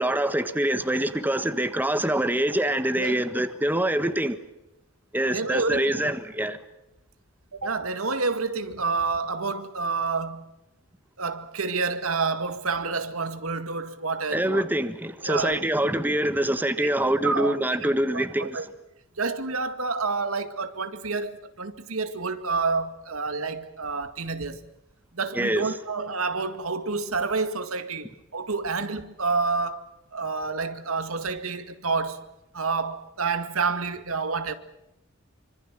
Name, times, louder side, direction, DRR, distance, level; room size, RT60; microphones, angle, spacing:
voice 1, 0.0-4.4 5.1-6.6 14.3-18.6 25.3-25.6, right 1 dB, 10° right, 1.4 m, -25 dB
voice 2, 5.3-6.1 7.5-10.5 11.2-14.6 15.2-15.6 16.8-18.6 19.2-24.6 25.1-32.2 32.5-34.5, right 4 dB, 85° right, 2.1 m, -29 dB
26.5 x 25.5 x 7.5 m
head